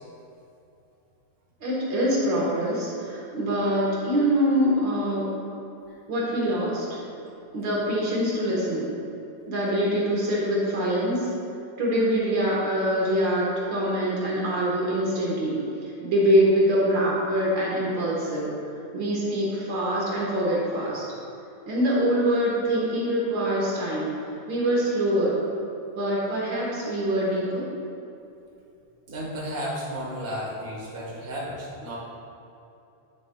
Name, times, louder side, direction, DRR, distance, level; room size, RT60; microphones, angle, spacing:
voice 1, 1.6-5.3 6.1-7.0 7.5-8.8 9.5-11.3 11.8-15.6 16.0-18.5 18.9-21.0 21.7-24.1 24.5-25.3 26.0-27.6, equal, 50° right, -5 dB, 1.5 m, -24 dB
voice 2, 29.1-31.9, equal, 80° right, -6 dB, 0.5 m, -33 dB
9.8 x 6.7 x 2.2 m, 2.7 s
omnidirectional pair, 3.5 m